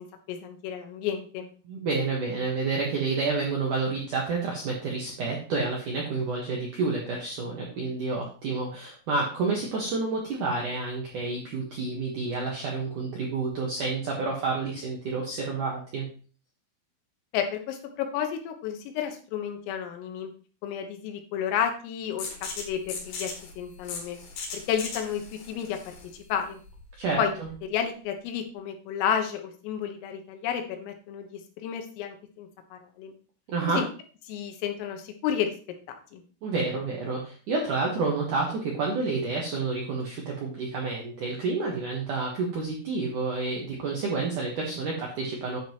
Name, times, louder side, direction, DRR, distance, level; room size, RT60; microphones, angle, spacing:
voice 1, 0.0-1.5 17.3-20.3 20.6-22.3 22.6-23.3 23.6-24.2 24.7-25.2 25.5-26.6 27.2-33.1 33.7-33.9 34.3-35.5 35.9-36.2, left 8 dB, 85° left, 5 dB, 3.8 m, -31 dB
voice 2, 1.6-16.1 27.0-27.5 33.5-33.8 36.4-45.6, right 3 dB, 75° right, -2 dB, 1.9 m, -29 dB
sound 1, 22.2-27.7, left 4 dB, 65° left, 4.3 m, -39 dB
10.0 x 7.6 x 3.0 m, 0.39 s
omnidirectional pair, 5.9 m